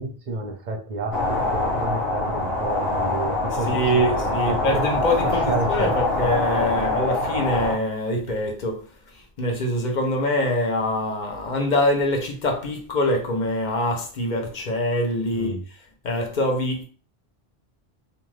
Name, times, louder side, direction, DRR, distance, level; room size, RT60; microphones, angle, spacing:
voice 1, 0.0-4.8 5.2-5.9 15.3-15.6, right 3 dB, 55° right, 0.7 m, -30 dB
sound 1, 1.1-7.8, left 2 dB, 75° left, 1.3 m, -24 dB
voice 2, 3.7-8.8 9.4-15.5 16.0-16.8, left 1 dB, 50° left, 0.7 m, -24 dB
2.6 x 2.3 x 3.1 m
omnidirectional pair, 1.0 m